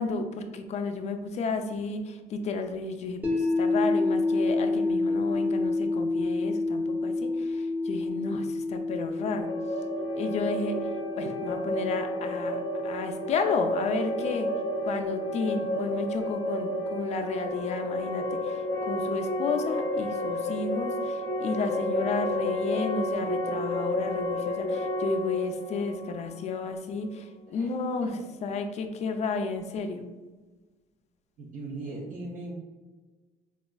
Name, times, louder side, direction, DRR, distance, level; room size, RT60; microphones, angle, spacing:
voice 1, 0.0-9.5 10.2-10.7 11.1-12.6 12.8-14.5 14.8-18.6 18.9-28.1 28.4-30.0, left 4 dB, 40° left, 6 dB, 0.4 m, -32 dB
sound 1, 3.2-15.3, left 3 dB, 10° right, 0.7 m, -30 dB
sound 2, 9.2-27.0, equal, 25° left, 0.8 m, -31 dB
voice 2, 31.4-32.5, right 2 dB, 50° right, -3 dB, 0.6 m, -39 dB
4.1 x 2.3 x 2.2 m, 1.3 s
cardioid pair, 110°, 17 cm